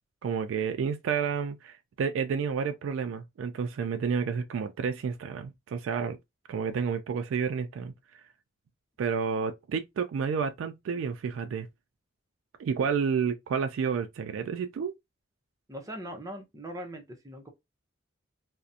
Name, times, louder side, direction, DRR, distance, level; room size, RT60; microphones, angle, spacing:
voice 1, 0.2-6.2 6.5-7.9 9.0-11.7 12.6-14.9, right 6 dB, 85° right, 0.3 m, -30 dB
voice 2, 15.7-17.5, right 1 dB, 20° right, 0.6 m, -40 dB
2.4 x 2.0 x 2.6 m
head